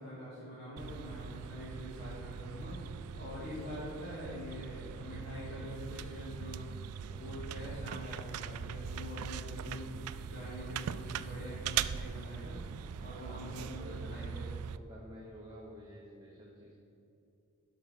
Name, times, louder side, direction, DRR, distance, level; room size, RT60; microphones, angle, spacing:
voice 1, 0.0-6.6 7.1-12.6 13.0-14.4, equal, 45° left, -10 dB, 2.5 m, -44 dB
sound 1, 0.8-14.8, right 8 dB, 85° right, 0.3 m, -41 dB
voice 2, 13.0-16.7, equal, 15° right, -5 dB, 1.2 m, -51 dB
12.0 x 5.7 x 5.3 m, 2.7 s
head